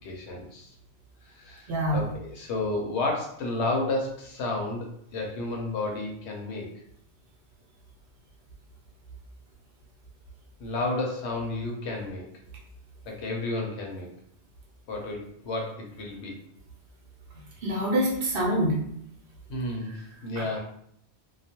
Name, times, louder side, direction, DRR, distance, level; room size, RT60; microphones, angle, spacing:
voice 1, 0.0-0.7 1.2-6.8 10.6-12.2 13.0-14.1 14.9-16.4 19.5-19.9 20.2-20.6, left 2 dB, 80° left, 0 dB, 0.9 m, -31 dB
voice 2, 1.7-2.0 17.6-18.8 19.9-20.0 20.4-20.5, equal, 60° right, -2 dB, 0.8 m, -25 dB
2.3 x 2.1 x 2.8 m, 0.69 s
omnidirectional pair, 1.2 m